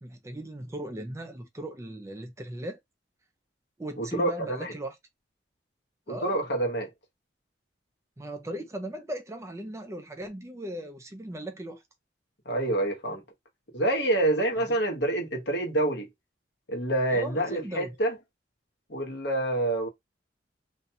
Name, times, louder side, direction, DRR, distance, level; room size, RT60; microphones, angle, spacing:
voice 1, 0.0-2.8 3.8-5.0 6.1-6.4 8.2-11.8 14.6-14.8 17.1-18.0, right 1 dB, 15° right, 0.3 m, -38 dB
voice 2, 4.0-4.7 6.1-6.9 12.4-13.2 13.7-16.1 16.7-18.2 18.9-19.9, right 1 dB, 65° left, 0.9 m, -27 dB
2.5 x 2.2 x 2.7 m
head